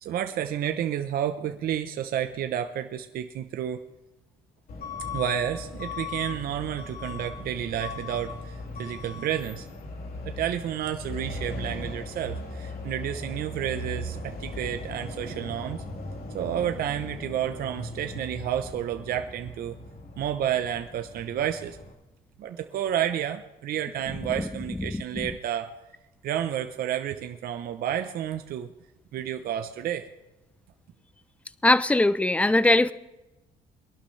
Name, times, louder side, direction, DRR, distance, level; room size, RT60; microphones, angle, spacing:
voice 1, 0.0-3.8 5.1-9.7 10.2-15.8 16.3-19.8 20.2-21.8 22.4-25.7 26.2-28.7 29.1-30.1, right 10 dB, 60° right, 6 dB, 0.9 m, -30 dB
Truck / Alarm, 4.7-21.9, left 2 dB, 60° left, 3.8 m, -38 dB
voice 2, 31.6-32.9, left 2 dB, 10° left, 15 dB, 0.6 m, -20 dB
22.5 x 11.5 x 3.3 m, 1.0 s
cardioid pair, 110°, 17 cm